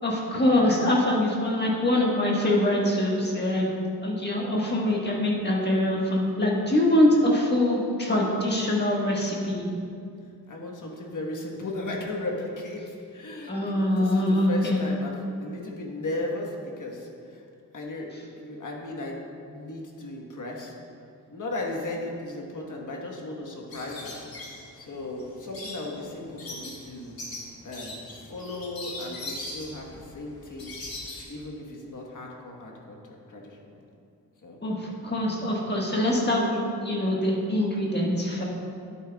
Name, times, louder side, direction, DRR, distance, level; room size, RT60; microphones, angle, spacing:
voice 1, 0.0-3.7 4.0-9.7 13.5-14.8 34.6-38.4, left 1 dB, 25° left, -3 dB, 1.5 m, -24 dB
voice 2, 10.5-15.1 15.4-17.4 17.7-18.1 18.4-20.7 21.3-27.2 27.6-30.8 31.3-33.0 33.3-33.8 34.4-34.6, left 2 dB, 55° left, 0 dB, 1.3 m, -36 dB
sound 1, 23.7-31.2, left 2 dB, 70° left, 2.1 m, -40 dB
11.0 x 8.6 x 2.3 m, 2.5 s
wide cardioid pair, 115°, 37 cm